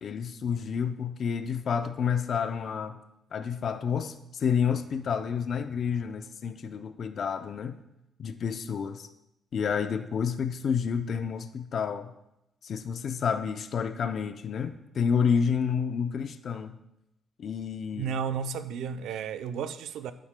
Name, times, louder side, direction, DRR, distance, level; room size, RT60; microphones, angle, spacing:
voice 1, 0.0-3.0 3.3-7.8 8.2-9.1 9.5-12.1 12.6-16.8 17.4-18.1, left 6 dB, 45° left, 0.5 m, -29 dB
voice 2, 17.9-20.1, right 7 dB, 80° right, 0.5 m, -33 dB
12.0 x 9.2 x 2.2 m
cardioid pair, 165°, 0 cm